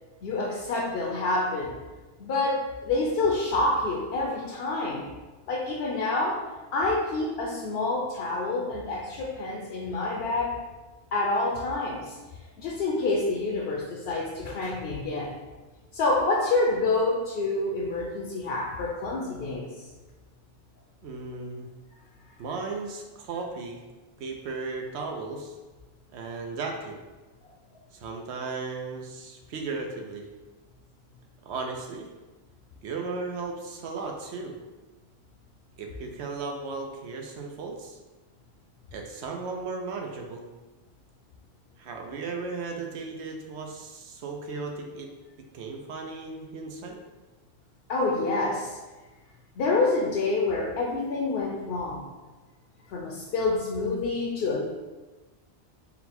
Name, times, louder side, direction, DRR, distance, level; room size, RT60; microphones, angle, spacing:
voice 1, 0.2-1.8 2.2-5.1 5.5-6.4 6.7-10.6 11.1-12.2 12.6-15.3 15.9-19.8 47.9-48.8 49.6-52.0 52.9-54.7, left 2 dB, 70° left, -1 dB, 0.8 m, -27 dB
voice 2, 21.0-21.7 22.4-23.8 24.2-25.6 26.1-27.0 27.9-30.3 31.5-32.1 32.8-34.5 35.8-38.0 38.9-40.5 41.8-45.1 45.5-47.0, right 4 dB, 85° right, 2 dB, 0.9 m, -35 dB
4.2 x 2.2 x 4.2 m, 1.2 s
omnidirectional pair, 1.1 m